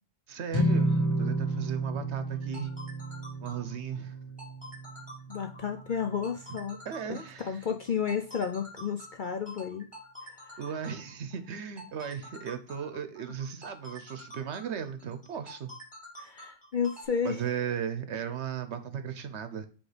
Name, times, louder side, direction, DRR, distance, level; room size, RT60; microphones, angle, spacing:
voice 1, 0.3-2.7 3.4-4.2 6.5-6.6 6.8-7.6 10.6-15.7 17.2-19.7, right 8 dB, 65° right, 9 dB, 1.0 m, -36 dB
sound 1, 0.5-6.9, right 1 dB, 25° left, 1.3 m, -32 dB
sound 2, 2.3-17.0, equal, 5° left, 2.1 m, -48 dB
voice 2, 5.3-6.8 7.1-9.8 10.2-10.7 16.2-17.5, left 7 dB, 55° left, 6 dB, 0.6 m, -32 dB
7.9 x 3.5 x 4.9 m, 0.38 s
omnidirectional pair, 1.3 m